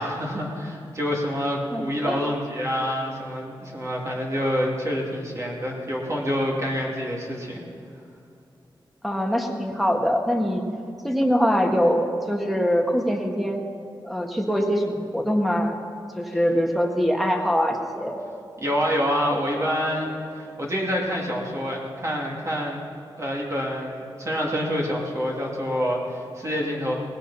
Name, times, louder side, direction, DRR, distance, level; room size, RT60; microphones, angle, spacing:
voice 1, 0.0-7.6 18.6-20.1 20.3-22.8 23.2-27.0, equal, 35° right, -2 dB, 2.7 m, -27 dB
voice 2, 1.7-2.2 9.0-10.6 11.0-13.6 14.0-15.8 16.2-18.2, equal, ahead, 1 dB, 1.8 m, -23 dB
19.0 x 16.5 x 4.2 m, 2.5 s
wide cardioid pair, 115°, 9 cm